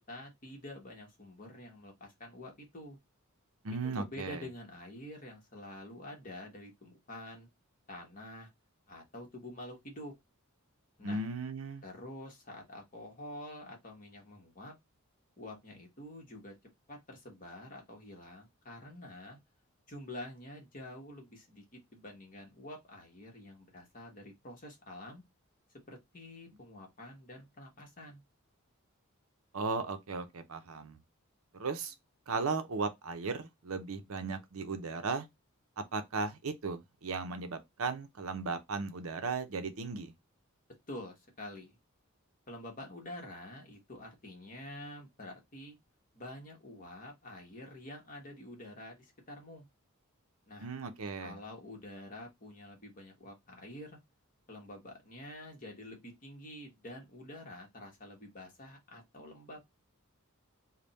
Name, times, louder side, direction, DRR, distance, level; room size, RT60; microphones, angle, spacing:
voice 1, 0.0-3.0 3.7-7.5 7.9-8.5 8.9-10.1 11.0-11.2 11.8-14.7 15.4-16.5 16.9-19.4 19.9-25.2 25.9-28.2 40.9-41.8 42.5-45.8 46.1-49.7 50.5-50.7 51.2-54.0 54.5-59.6, left 1 dB, 40° left, 1.3 m, -47 dB
voice 2, 3.6-4.4 11.0-11.8 29.5-31.0 31.5-31.9 32.3-35.3 35.8-40.1 50.6-51.4, right 4 dB, 70° right, 0.7 m, -36 dB
3.4 x 2.3 x 4.0 m
head